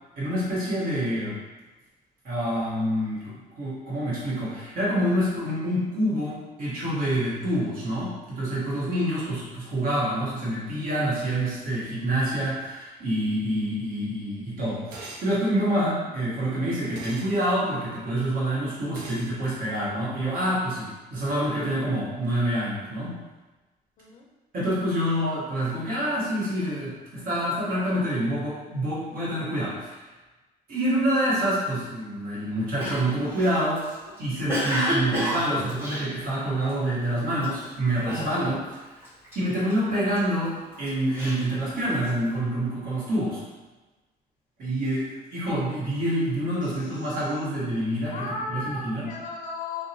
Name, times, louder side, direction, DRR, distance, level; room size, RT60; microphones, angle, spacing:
voice 1, 0.2-1.4 2.2-23.1 24.5-30.1 30.7-33.8 34.2-38.8 39.3-43.4 44.6-48.2 48.5-49.1, right 1 dB, 55° right, -7 dB, 1.1 m, -27 dB
sound 1, 14.9-15.3 16.9-17.3 18.9-19.3, right 2 dB, 85° right, 0.5 m, -40 dB
Cough, 32.8-36.9 37.4-37.7 38.1-38.8 39.0-40.2 40.7-42.2, equal, 15° right, 1.1 m, -30 dB
voice 2, 46.6-47.2 48.1-49.9, left 3 dB, 50° left, 0 dB, 0.4 m, -36 dB
2.6 x 2.0 x 2.7 m, 1.2 s
cardioid pair, 110°, 17 cm